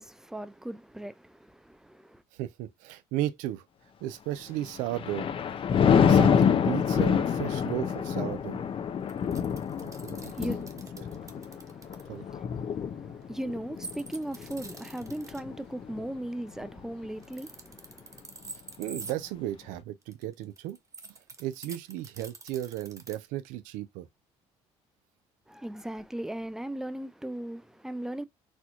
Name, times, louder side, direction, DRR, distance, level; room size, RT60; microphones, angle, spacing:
voice 1, 0.0-2.2 10.2-18.2 25.5-28.2, right 1 dB, 5° right, 0.4 m, -38 dB
voice 2, 2.3-3.6 4.0-5.3 5.9-8.6 9.8-10.3 12.1-12.2 18.8-20.8 21.4-24.1, right 14 dB, 85° right, 0.5 m, -35 dB
Thunder, 4.6-16.1 16.6-16.9, left 7 dB, 45° left, 0.6 m, -27 dB
sound 1, 9.1-12.0 13.8-15.4 17.1-19.1 20.0-23.1, right 3 dB, 25° right, 0.8 m, -45 dB
4.3 x 2.3 x 2.9 m
supercardioid pair, 85°, 13 cm